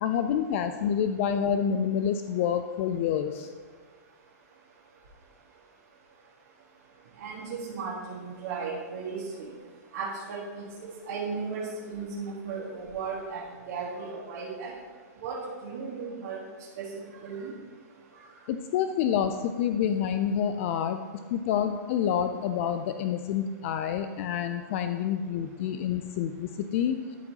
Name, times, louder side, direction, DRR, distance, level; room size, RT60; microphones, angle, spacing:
voice 1, 0.0-3.5 18.5-21.0 21.3-27.0, left 8 dB, 50° left, 8 dB, 0.4 m, -28 dB
voice 2, 7.2-9.5 9.9-14.7 15.2-16.4 16.8-16.9 17.2-17.5, right 5 dB, 60° right, -6 dB, 1.6 m, -36 dB
12.0 x 4.4 x 2.8 m, 1.5 s
hypercardioid pair, 125°, 9 cm